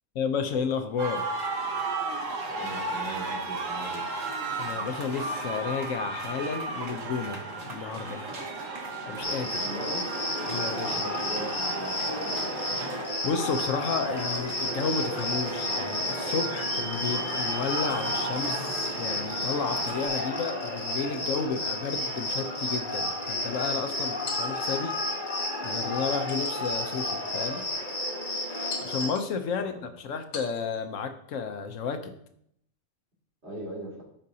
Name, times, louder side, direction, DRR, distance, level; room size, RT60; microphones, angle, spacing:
voice 1, 0.1-1.4 4.6-8.3 9.1-9.6 10.5-11.0 13.2-25.0 25.6-27.7 28.8-32.1, left 5 dB, 75° left, 7 dB, 1.1 m, -32 dB
sound 1, 1.0-20.1, right 3 dB, 75° right, 1.7 m, -35 dB
voice 2, 2.6-4.0 9.6-10.1 10.8-12.4 29.5-29.9 33.4-34.0, right 1 dB, 55° right, -5 dB, 2.9 m, -39 dB
Cricket, 9.2-29.1, left 1 dB, 40° left, 1.4 m, -31 dB
sound 2, 24.3-25.0 26.3-27.1 27.6-27.7 28.7-29.4 30.3-30.8, left 5 dB, 90° left, 1.8 m, -43 dB
13.0 x 5.2 x 2.8 m, 0.71 s
omnidirectional pair, 1.4 m